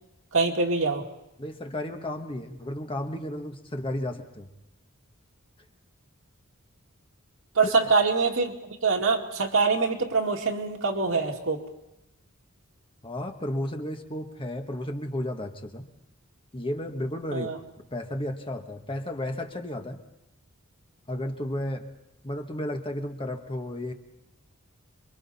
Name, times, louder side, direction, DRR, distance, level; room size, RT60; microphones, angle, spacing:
voice 1, 0.3-1.0 7.6-11.6 17.3-17.6, right 4 dB, 70° right, 2 dB, 2.2 m, -24 dB
voice 2, 1.4-4.5 7.6-7.7 13.0-15.9 16.5-17.5 17.9-20.0 21.1-21.9 22.2-23.9, left 1 dB, 25° left, 4 dB, 1.4 m, -33 dB
27.5 x 23.0 x 4.2 m, 0.90 s
head